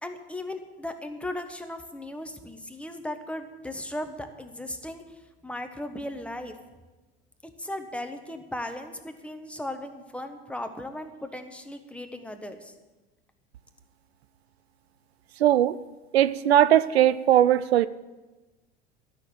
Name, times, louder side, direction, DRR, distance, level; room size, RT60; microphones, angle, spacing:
voice 1, 0.0-5.0 5.4-6.5 7.6-12.7, left 1 dB, 5° left, 6 dB, 1.3 m, -37 dB
voice 2, 15.4-15.8 16.1-17.9, right 11 dB, 80° right, 17 dB, 0.5 m, -19 dB
12.5 x 6.5 x 9.1 m, 1.2 s
hypercardioid pair, 80°, 31 cm